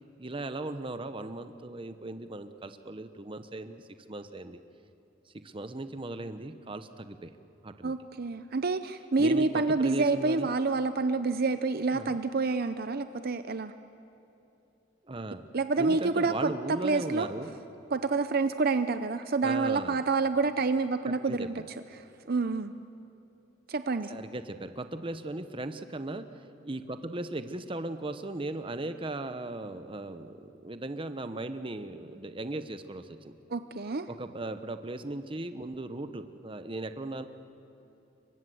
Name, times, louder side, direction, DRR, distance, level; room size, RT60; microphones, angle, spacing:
voice 1, 0.2-4.6 5.4-7.3 7.6-7.9 9.2-10.5 11.9-12.1 15.1-15.5 15.8-17.5 19.4-20.0 21.0-21.5 24.1-33.3 34.1-37.2, right 2 dB, 25° right, 9 dB, 0.9 m, -37 dB
voice 2, 7.8-13.7 15.5-17.3 17.9-21.6 21.9-22.7 23.7-24.1 33.5-34.1, right 3 dB, 50° right, 10 dB, 0.7 m, -28 dB
29.5 x 23.5 x 7.8 m, 2.9 s
head